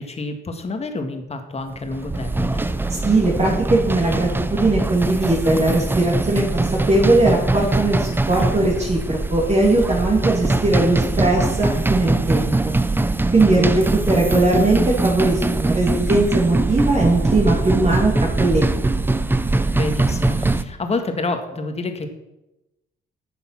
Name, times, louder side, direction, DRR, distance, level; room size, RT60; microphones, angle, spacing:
voice 1, 0.0-2.7 13.5-14.1 19.7-22.1, left 2 dB, 30° left, 6 dB, 1.6 m, -28 dB
sound 1, 1.8-20.6, right 2 dB, 10° right, 0.6 m, -22 dB
voice 2, 2.9-12.7 13.3-13.7 14.1-18.7, right 2 dB, 35° right, -3 dB, 2.6 m, -19 dB
10.0 x 7.0 x 5.9 m, 0.94 s
cardioid pair, 90°, 20 cm